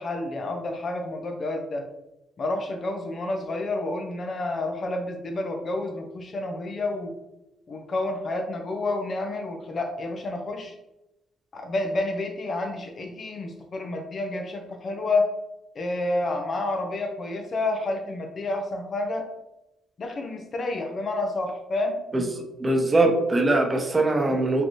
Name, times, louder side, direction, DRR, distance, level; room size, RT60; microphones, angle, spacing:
voice 1, 0.0-1.9 2.4-7.1 7.7-10.7 11.5-15.3 15.7-19.3 20.0-22.0, left 2 dB, 45° left, 4 dB, 0.8 m, -29 dB
voice 2, 22.6-24.6, right 2 dB, 25° right, 3 dB, 0.8 m, -21 dB
5.0 x 3.0 x 3.0 m, 0.94 s
cardioid pair, 90°, 0 cm